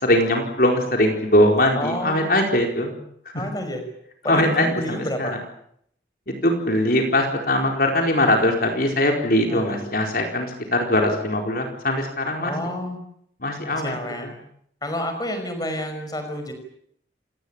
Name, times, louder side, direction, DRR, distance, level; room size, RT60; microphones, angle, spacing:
voice 1, 0.0-3.0 3.3-3.4 4.3-5.3 6.3-12.5 13.4-13.9 14.2-14.3, left 1 dB, 50° left, 3 dB, 4.5 m, -21 dB
voice 2, 1.7-2.2 3.3-3.8 4.2-5.4 9.4-9.9 12.4-13.0 13.7-14.3 14.8-16.5, left 1 dB, 20° left, 6 dB, 5.3 m, -29 dB
28.0 x 18.5 x 8.9 m, 0.70 s
head